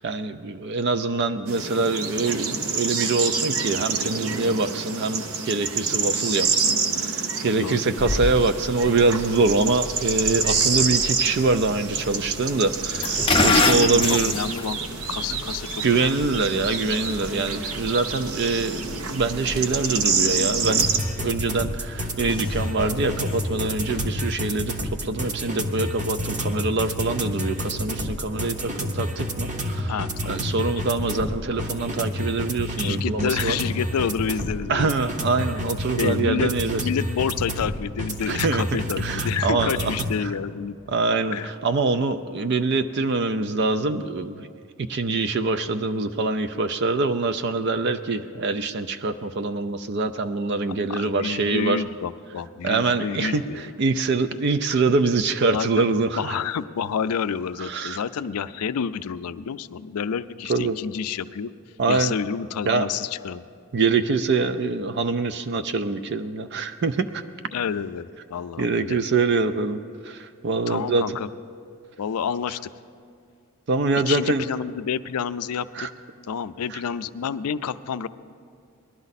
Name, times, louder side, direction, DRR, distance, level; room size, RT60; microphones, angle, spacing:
voice 1, 0.0-14.3 15.8-20.9 21.2-24.7 25.0-29.9 30.3-33.6 34.7-36.8 38.3-38.6 39.0-39.9 40.2-40.3 40.9-44.5 44.9-51.8 52.6-56.4 57.6-58.0 60.5-60.8 61.8-62.1 62.7-62.9 63.7-67.2 68.6-69.8 70.1-71.0 73.7-74.4 75.8-75.9 76.7-76.8, right 3 dB, 50° right, 10 dB, 0.4 m, -24 dB
sound 1, 1.5-21.0, right 5 dB, 80° right, 0.8 m, -27 dB
voice 2, 7.6-8.0 13.5-14.8 15.1-16.1 29.9-30.8 32.8-34.9 36.0-36.5 36.8-40.8 41.3-41.5 50.9-53.7 55.5-55.9 56.2-61.5 61.9-63.4 67.5-69.0 70.7-71.3 72.0-72.6 74.1-75.9 76.3-78.1, left 7 dB, 85° left, 14 dB, 0.4 m, -29 dB
sound 2, 8.0-24.2, left 3 dB, 25° left, 0.5 m, -31 dB
sound 3, 20.6-40.2, equal, 35° right, 0.9 m, -29 dB
19.0 x 12.0 x 4.1 m, 2.4 s
head